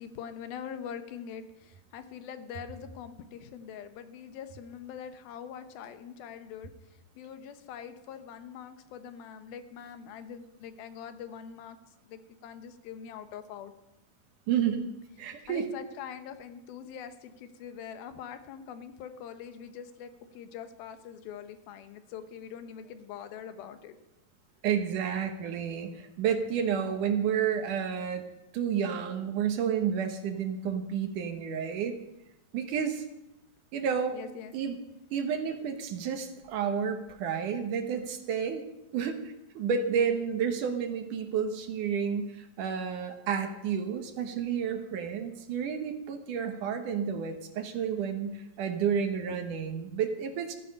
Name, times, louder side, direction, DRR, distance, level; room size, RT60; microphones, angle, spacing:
voice 1, 0.0-6.7 7.2-11.8 12.0-13.7 15.5-24.0 34.1-34.5 49.3-49.4, left 8 dB, 85° left, 9 dB, 2.9 m, -43 dB
voice 2, 14.5-14.9 15.2-15.7 24.6-28.2 28.5-32.0 32.5-33.0 33.7-34.2 34.5-34.8 35.1-38.6 38.9-50.5, right 7 dB, 70° right, 6 dB, 2.5 m, -30 dB
15.0 x 15.0 x 5.4 m, 0.88 s
omnidirectional pair, 4.2 m